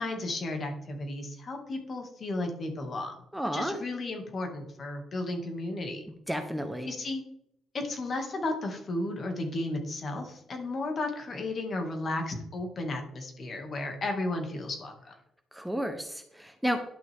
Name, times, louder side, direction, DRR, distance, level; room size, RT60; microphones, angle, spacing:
voice 1, 0.0-3.1 3.5-6.0 6.8-7.2 7.7-15.1, left 2 dB, 45° left, 3 dB, 2.2 m, -34 dB
voice 2, 3.3-3.8 6.3-6.9 15.5-16.8, equal, 5° right, 6 dB, 1.0 m, -31 dB
11.5 x 6.1 x 3.6 m, 0.73 s
cardioid pair, 90°, 0 cm